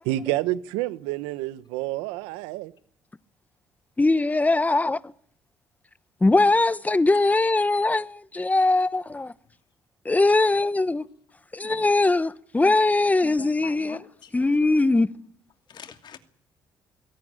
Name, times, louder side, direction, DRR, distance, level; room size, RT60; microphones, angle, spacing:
voice 1, 0.0-2.7, right 15 dB, 90° right, 1.1 m, -28 dB
voice 2, 4.0-5.1 6.2-9.3 10.0-11.0 11.5-14.0 14.3-15.1, left 2 dB, 15° left, 1.2 m, -21 dB
voice 3, 11.6-11.9 12.6-12.8 13.2-14.3 15.7-16.2, left 8 dB, 60° left, 2.7 m, -44 dB
23.5 x 17.0 x 9.0 m
supercardioid pair, 60°, 9 cm